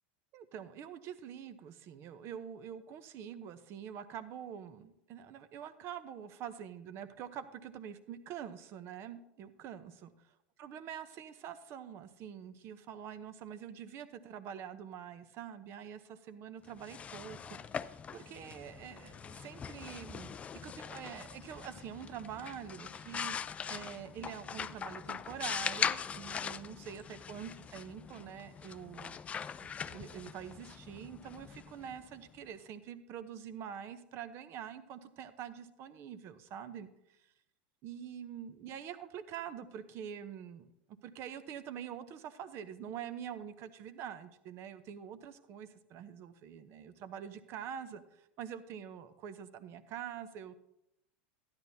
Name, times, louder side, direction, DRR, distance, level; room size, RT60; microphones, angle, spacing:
voice 1, 0.3-10.1 10.6-23.4 23.7-29.2 29.6-36.9 37.8-50.5, right 9 dB, 45° right, 11 dB, 0.8 m, -45 dB
sound 1, 16.7-32.4, left 7 dB, 20° left, 0.3 m, -41 dB
13.0 x 10.5 x 2.8 m, 0.83 s
hypercardioid pair, 110°, 6 cm